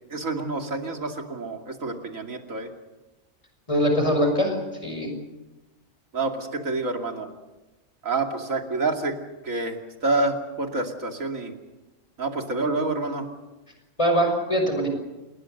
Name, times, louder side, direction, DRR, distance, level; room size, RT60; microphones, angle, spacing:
voice 1, 0.1-2.7 6.1-7.3 8.0-9.1 9.4-11.5 12.2-13.3, right 3 dB, 85° right, 3 dB, 3.1 m, -28 dB
voice 2, 3.7-5.1 14.0-14.9, equal, 25° left, 4 dB, 6.0 m, -22 dB
28.5 x 20.5 x 6.7 m, 1.1 s
omnidirectional pair, 1.4 m